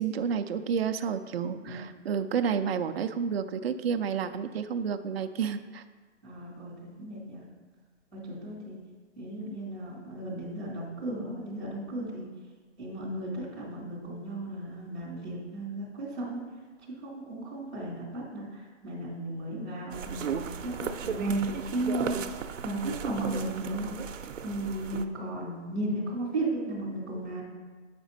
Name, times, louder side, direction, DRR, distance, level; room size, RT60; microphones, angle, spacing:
voice 1, 0.0-5.8, right 7 dB, 55° right, 8 dB, 0.5 m, -30 dB
voice 2, 1.4-1.8 6.2-7.4 8.1-8.8 9.2-12.3 12.8-16.4 17.0-18.5 18.8-22.1 22.6-23.9 24.4-27.4, right 1 dB, 5° left, -12 dB, 1.0 m, -35 dB
sound 1, 19.9-25.0, right 7 dB, 90° right, 0.7 m, -36 dB
8.1 x 5.1 x 4.0 m, 1.4 s
hypercardioid pair, 180°, 37 cm